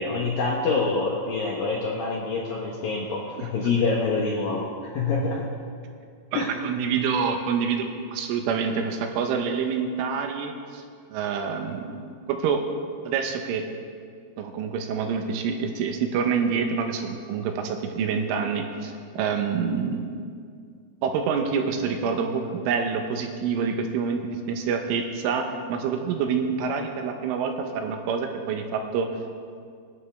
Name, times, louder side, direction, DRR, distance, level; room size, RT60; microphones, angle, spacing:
voice 1, 0.0-5.5 6.3-6.5, left 4 dB, 70° left, -3 dB, 2.3 m, -26 dB
voice 2, 3.4-3.7 6.3-10.8 11.1-12.7 13.1-13.7 14.4-20.1 21.0-29.1, right 6 dB, 80° right, 4 dB, 3.5 m, -27 dB
26.0 x 11.0 x 3.6 m, 2.2 s
omnidirectional pair, 5.9 m